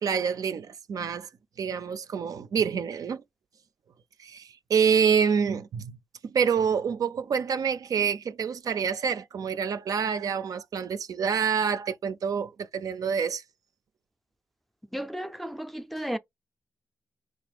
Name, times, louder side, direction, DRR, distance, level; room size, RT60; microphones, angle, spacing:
voice 1, 0.0-1.3 1.6-3.2 4.2-6.0 6.2-13.4, right 6 dB, 65° right, 0.4 m, -27 dB
voice 2, 14.9-16.2, equal, ahead, 0.4 m, -34 dB
3.8 x 2.5 x 3.4 m
cardioid pair, 55°, 7 cm